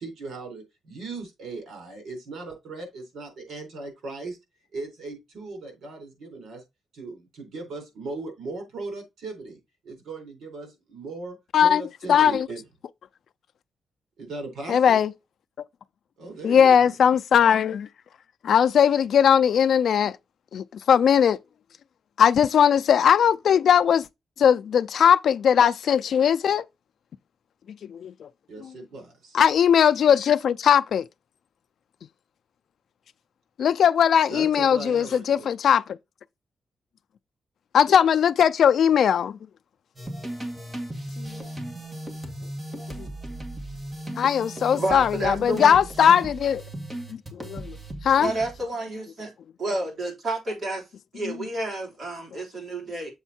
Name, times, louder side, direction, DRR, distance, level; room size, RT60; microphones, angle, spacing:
voice 1, 0.0-4.4 4.7-6.6 6.9-12.6 14.2-15.0 16.2-17.0 28.5-29.4 34.3-35.5, right 3 dB, 80° right, 4.0 m, -38 dB
voice 2, 12.1-12.5 14.7-15.1 16.4-17.9 18.4-20.2 20.5-21.4 22.2-24.1 24.4-26.6 27.9-28.3 29.3-31.0 33.6-35.8 37.7-39.4 41.2-41.4 43.0-43.1 44.2-46.6 47.3-47.8 48.0-48.3 51.2-51.3, left 8 dB, 75° left, 0.3 m, -19 dB
sound 1, 40.0-48.7, right 1 dB, 20° right, 2.0 m, -36 dB
voice 3, 44.8-45.8 48.2-49.3 49.6-50.9 51.1-53.1, right 2 dB, 45° right, 3.7 m, -30 dB
7.2 x 4.4 x 4.2 m
cardioid pair, 110°, 0 cm